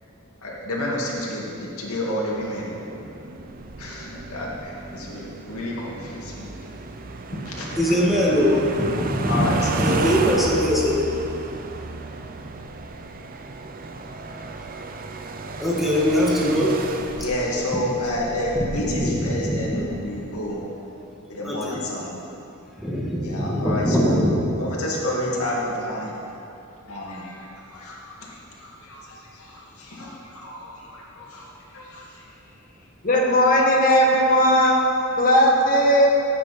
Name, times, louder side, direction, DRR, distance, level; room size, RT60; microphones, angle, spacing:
voice 1, 0.4-2.7 3.8-6.5 7.5-7.9 9.2-10.2 17.2-20.6 21.3-22.1 23.2-24.2 24.6-26.1 26.9-31.5 31.7-32.2, left 1 dB, 90° left, 2.3 m, -30 dB
sound 1, 2.4-20.6, right 3 dB, 45° right, 0.6 m, -34 dB
voice 2, 7.8-9.5 9.8-11.0 15.6-16.8 18.8-19.6 21.4-21.8 22.8-24.3, equal, ahead, 1.7 m, -21 dB
voice 3, 33.0-36.1, equal, 40° left, 1.8 m, -18 dB
16.0 x 8.6 x 4.3 m
head